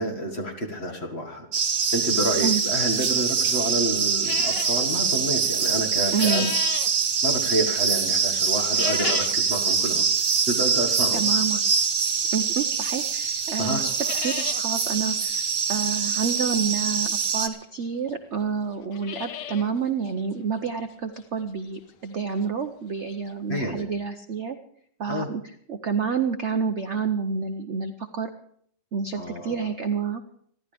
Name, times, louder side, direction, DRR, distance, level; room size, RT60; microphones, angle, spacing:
voice 1, 0.0-1.5 1.9-6.5 7.2-10.1 10.5-11.2 13.6-13.8 23.5-23.9 25.1-25.3 29.2-29.7, equal, 35° left, 3 dB, 2.0 m, -29 dB
sound 1, 1.5-17.5, right 6 dB, 75° right, 1.9 m, -24 dB
sound 2, 4.2-4.8 5.8-6.9 8.6-9.4 9.9-10.0 10.8-10.9 12.6-12.7 13.1-13.2 13.4-13.5 13.8-14.6 15.0-15.1 15.3-15.4 16.9-17.0 17.8-17.9 18.1-18.2 18.7-19.7 20.1-20.2 20.7-20.8 21.2-21.3 23.0-23.1 23.3-23.4 23.8-23.9, left 10 dB, 70° left, 1.4 m, -34 dB
voice 2, 6.1-6.5 11.1-11.6 12.3-13.9 14.2-24.6 25.0-25.4 25.7-28.3 28.9-30.2, right 6 dB, 55° right, 7 dB, 0.8 m, -28 dB
28.0 x 11.5 x 3.4 m, 0.65 s
omnidirectional pair, 2.0 m